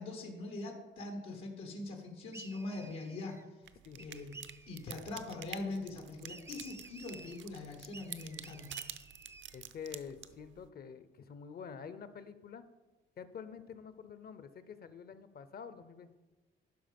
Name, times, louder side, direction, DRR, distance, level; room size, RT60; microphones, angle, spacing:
voice 1, 0.0-3.4 4.0-4.3 4.7-8.8, left 2 dB, 85° left, 2 dB, 1.4 m, -42 dB
sound 1, 2.3-3.5 4.0-4.9 6.3-7.4 7.9-9.6, right 3 dB, 15° right, 0.5 m, -53 dB
sound 2, 3.6-10.7, right 10 dB, 70° right, 0.6 m, -49 dB
voice 2, 9.5-12.6 13.2-16.2, left 6 dB, 50° left, 12 dB, 0.7 m, -47 dB
11.5 x 5.2 x 5.3 m, 1.2 s
cardioid pair, 90°, 20 cm